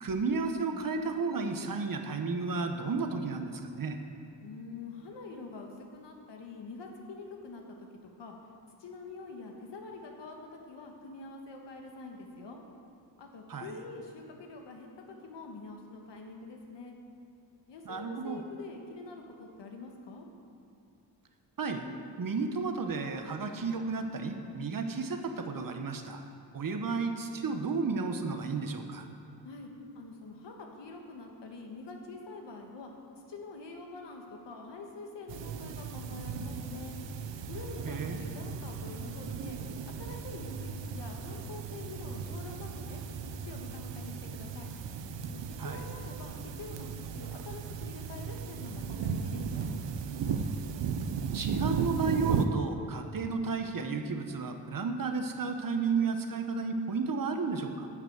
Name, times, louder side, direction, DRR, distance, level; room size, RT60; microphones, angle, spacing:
voice 1, 0.0-4.0 13.5-13.8 17.8-18.4 21.6-21.8 22.2-26.3 26.5-29.1 37.9-38.2 45.6-45.8 51.3-57.9, right 4 dB, 50° right, 6 dB, 1.0 m, -32 dB
voice 2, 4.4-7.9 8.2-8.3 8.8-12.6 13.2-17.0 17.7-20.3 29.4-29.7 29.9-32.9 33.3-37.0 37.5-39.6 40.0-43.0 43.4-44.7 45.3-49.7, left 3 dB, 85° left, 2 dB, 1.5 m, -45 dB
sound 1, 35.3-52.5, right 6 dB, 90° right, 0.7 m, -36 dB
11.0 x 6.0 x 8.0 m, 2.6 s
wide cardioid pair, 100°, 42 cm